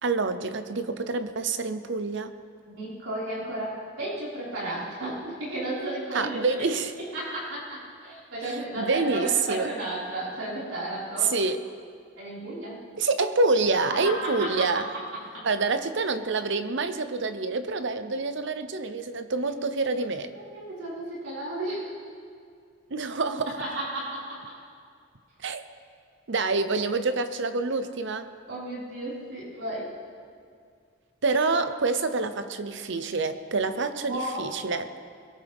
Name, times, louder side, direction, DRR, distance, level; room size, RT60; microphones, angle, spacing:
voice 1, 0.0-2.3 6.1-6.9 8.8-9.7 11.2-11.6 13.0-14.9 15.4-20.3 22.9-23.6 25.4-25.6 26.3-28.3 31.2-35.0, right 3 dB, 60° right, 10 dB, 0.8 m, -27 dB
voice 2, 2.7-6.5 7.0-11.3 12.2-12.8 13.9-14.6 15.3-15.5 20.5-21.9 23.6-24.6 28.5-29.9 34.1-34.4, right 1 dB, 85° right, -8 dB, 5.4 m, -33 dB
21.5 x 17.5 x 3.6 m, 2.2 s
head